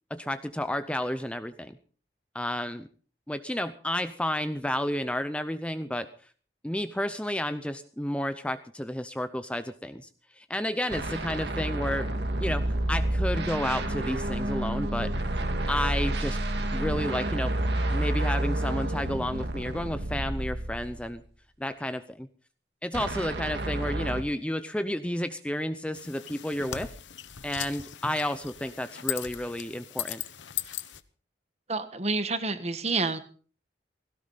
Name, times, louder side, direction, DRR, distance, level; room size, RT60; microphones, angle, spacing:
voice 1, 0.1-1.8 2.3-2.9 3.3-6.1 6.6-10.1 10.4-12.1 12.4-15.1 15.7-16.4 16.7-17.5 17.9-21.2 21.6-22.3 22.8-26.9 27.4-30.2, left 1 dB, 5° left, 11 dB, 0.6 m, -31 dB
sound 1, 10.9-21.2 22.9-24.2, right 1 dB, 70° right, 1.9 m, -29 dB
sound 2, 25.9-31.0, left 11 dB, 90° left, 1.0 m, -38 dB
voice 2, 31.7-33.2, right 3 dB, 35° right, 11 dB, 1.3 m, -28 dB
17.5 x 17.0 x 4.1 m, 0.41 s
head